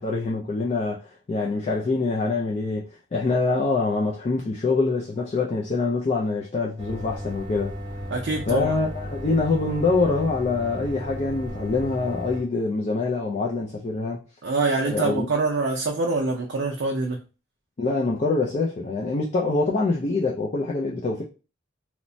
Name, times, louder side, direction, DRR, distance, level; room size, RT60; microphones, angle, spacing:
voice 1, 0.0-7.7 8.5-14.2 14.8-15.3 17.8-21.2, left 3 dB, 35° left, 0.4 m, -25 dB
sound 1, 6.8-12.4, equal, 25° right, 0.7 m, -35 dB
voice 2, 8.1-8.7 14.4-17.2, right 3 dB, 65° right, 0.4 m, -25 dB
3.0 x 2.0 x 2.6 m
head